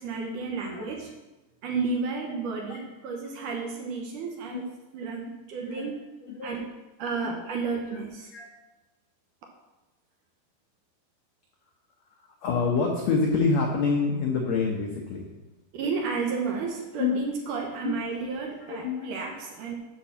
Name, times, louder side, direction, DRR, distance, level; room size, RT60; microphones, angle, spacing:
voice 1, 0.0-1.1 1.6-6.0 6.4-6.7 7.0-8.3 15.7-19.7, right 4 dB, 70° right, 1 dB, 2.1 m, -32 dB
voice 2, 12.4-15.2 17.0-17.2 17.8-18.0 18.6-19.1, left 4 dB, 85° left, 1 dB, 1.5 m, -27 dB
8.4 x 5.1 x 7.0 m, 1.1 s
omnidirectional pair, 4.4 m